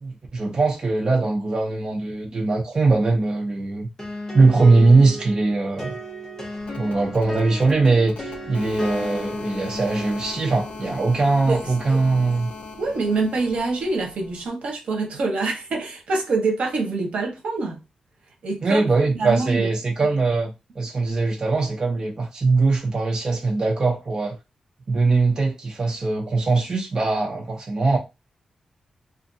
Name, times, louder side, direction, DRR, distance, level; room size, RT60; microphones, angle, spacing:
voice 1, 0.0-3.9 4.3-5.9 6.8-12.5 18.6-24.4 24.9-28.0, right 3 dB, 35° right, 0.6 m, -21 dB
sound 1, 4.0-13.6, equal, 20° left, 0.9 m, -35 dB
sound 2, 6.6-14.5, left 4 dB, 75° left, 0.4 m, -39 dB
voice 2, 11.5-12.0 12.8-17.8 18.4-18.8 19.1-19.7, right 3 dB, 80° right, 0.9 m, -25 dB
2.5 x 2.5 x 2.6 m
wide cardioid pair, 170°, 2 cm